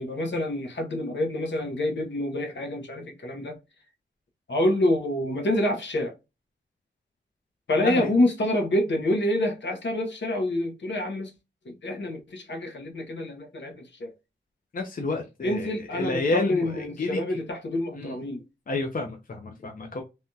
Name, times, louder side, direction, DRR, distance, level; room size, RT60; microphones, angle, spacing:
voice 1, 0.0-3.6 4.5-6.1 7.7-11.3 11.7-14.1 15.4-18.4, left 1 dB, 65° left, 0.9 m, -27 dB
voice 2, 7.8-8.1 14.7-17.2 17.9-18.1 18.7-20.0, left 2 dB, 45° left, 0.6 m, -30 dB
3.4 x 2.3 x 2.6 m
wide cardioid pair, 110°, 20 cm